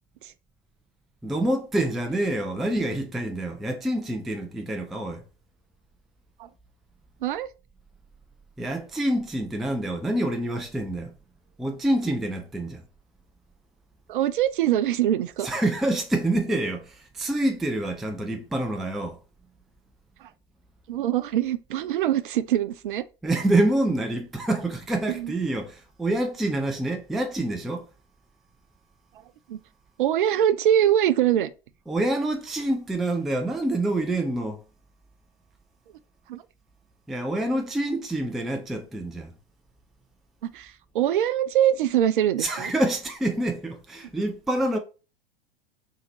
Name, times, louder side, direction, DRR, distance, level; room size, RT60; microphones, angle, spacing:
voice 1, 1.2-5.2 8.6-11.1 11.6-12.8 15.4-19.2 23.2-27.9 31.9-34.6 37.1-39.3 42.4-44.8, right 1 dB, ahead, 0.3 m, -27 dB
voice 2, 14.1-15.5 20.2-20.3 20.9-23.0 25.1-25.3 29.5-29.6 30.0-31.5 36.3-36.4 40.5-42.7, right 11 dB, 55° right, 0.5 m, -23 dB
5.6 x 2.7 x 3.0 m
figure-of-eight pair, 95°, 31 cm